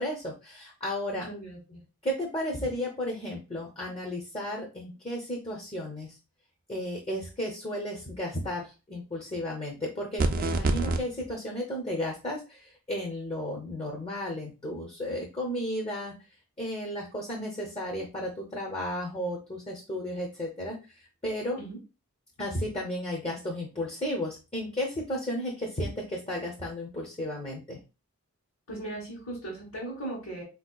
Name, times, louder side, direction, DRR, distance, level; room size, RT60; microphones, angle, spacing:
voice 1, 0.0-1.3 2.0-6.1 6.7-16.1 16.6-20.8 21.2-21.6 22.4-27.8, left 1 dB, 25° left, -1 dB, 0.6 m, -33 dB
voice 2, 1.2-1.8 21.6-21.8 28.7-30.4, right 2 dB, 65° left, -6 dB, 1.4 m, -38 dB
sound 1, 10.2-11.0, right 3 dB, 40° right, 0.4 m, -25 dB
4.0 x 2.8 x 2.2 m, 0.30 s
head